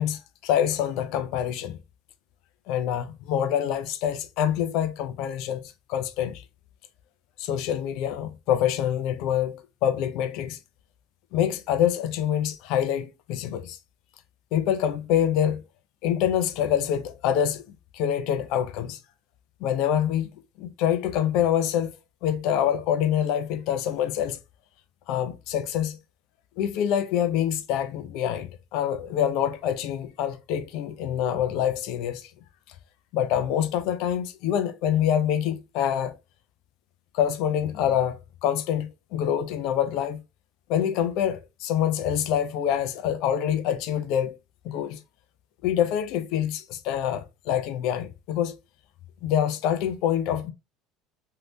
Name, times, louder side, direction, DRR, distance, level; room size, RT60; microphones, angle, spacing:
voice 1, 0.0-1.8 2.7-6.4 7.4-10.6 11.3-13.8 14.5-15.6 16.0-17.6 17.9-19.0 19.6-21.9 22.2-24.4 25.1-26.0 26.6-32.3 33.1-36.1 37.1-40.2 40.7-44.4 44.6-45.0 45.6-48.6 49.2-50.5, left 10 dB, 70° left, 0.5 m, -26 dB
3.2 x 2.8 x 2.7 m
supercardioid pair, 105°, 0 cm